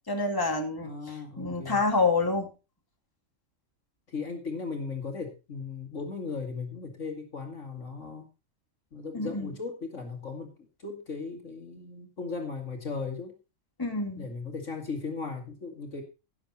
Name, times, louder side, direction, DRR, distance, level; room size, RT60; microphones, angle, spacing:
voice 1, 0.1-0.9 1.4-2.5 9.1-9.6 13.8-14.3, left 3 dB, 15° left, 3 dB, 2.4 m, -27 dB
voice 2, 0.8-1.8 4.1-8.3 8.9-10.5 10.8-13.4 14.2-16.0, left 4 dB, 60° left, 3 dB, 2.5 m, -37 dB
17.0 x 7.3 x 4.2 m, 0.30 s
omnidirectional pair, 1.5 m